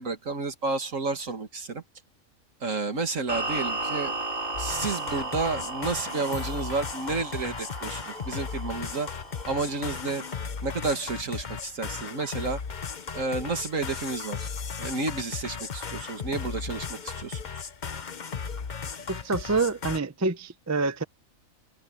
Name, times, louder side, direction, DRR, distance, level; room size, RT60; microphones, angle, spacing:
voice 1, 0.0-1.8 2.6-4.1 4.6-9.1 9.4-10.2 10.6-12.6 13.1-14.5 14.8-17.4, right 3 dB, 65° right, 2.4 m, -31 dB
sound 1, 3.3-10.5, right 2 dB, 40° right, 4.1 m, -35 dB
sound 2, 4.5-20.0, left 6 dB, 40° left, 0.9 m, -36 dB
voice 2, 19.1-21.0, right 3 dB, 15° right, 0.5 m, -27 dB
omnidirectional pair, 1.5 m